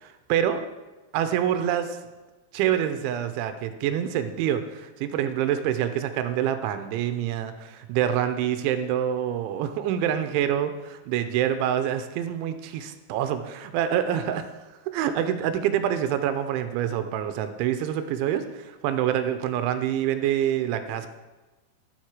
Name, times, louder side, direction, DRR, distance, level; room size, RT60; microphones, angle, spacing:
voice 1, 0.0-0.6 1.1-2.0 2.5-14.5 14.9-21.1, right 10 dB, 85° right, 9 dB, 3.1 m, -26 dB
12.5 x 7.4 x 6.4 m, 1.2 s
omnidirectional pair, 5.5 m